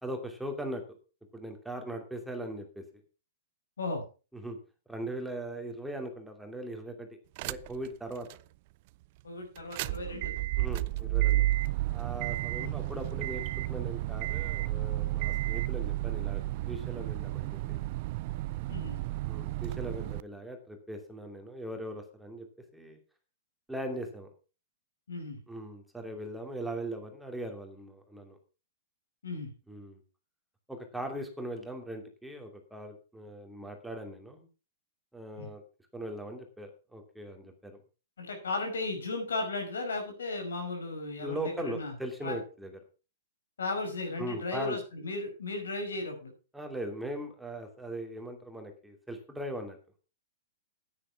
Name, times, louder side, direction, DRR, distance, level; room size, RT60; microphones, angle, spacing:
voice 1, 0.0-0.8 1.3-2.8 4.3-4.6 4.9-7.1 7.4-8.3 10.6-11.5 11.9-13.4 13.7-17.8 19.3-22.5 22.7-23.0 23.7-24.3 25.5-28.4 29.7-30.0 30.7-34.5 35.1-35.6 35.9-37.8 41.2-42.8 44.2-44.8 46.5-49.8, right 1 dB, 5° right, 4 dB, 2.7 m, -39 dB
sound 1, 7.4-7.9 8.3-8.4 9.6-20.2, right 17 dB, 50° right, 0.5 m, -32 dB
voice 2, 9.2-10.3 12.6-12.7 18.7-19.0 25.1-25.4 29.2-29.5 35.4-35.5 38.2-41.9 42.2-42.4 43.6-46.3, left 3 dB, 80° left, 4 dB, 5.5 m, -35 dB
9.9 x 9.8 x 5.7 m, 0.34 s
hypercardioid pair, 115°, 0 cm